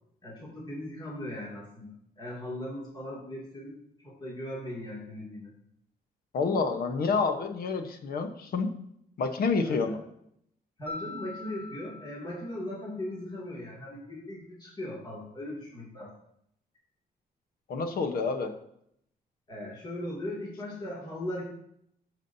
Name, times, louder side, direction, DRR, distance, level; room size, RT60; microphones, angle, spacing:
voice 1, 0.2-3.8 4.0-5.5 9.6-10.0 10.8-16.1 19.5-21.4, left 1 dB, 25° left, -4 dB, 2.5 m, -38 dB
voice 2, 6.3-8.7 9.2-10.0 17.7-18.5, left 4 dB, 70° left, 7 dB, 1.1 m, -28 dB
Mallet percussion, 10.9-13.2, left 2 dB, 10° left, 2.2 m, -44 dB
13.0 x 7.3 x 2.8 m, 0.72 s
cardioid pair, 140°, 16 cm